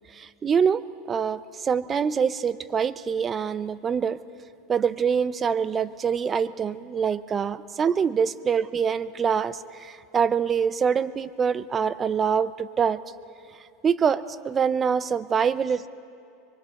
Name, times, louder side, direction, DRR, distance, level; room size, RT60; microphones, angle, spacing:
voice 1, 0.2-0.8 1.1-4.2 4.7-13.0 13.8-15.9, right 7 dB, 25° right, 15 dB, 0.6 m, -25 dB
24.0 x 23.0 x 6.5 m, 2.5 s
supercardioid pair, 130°, 0 cm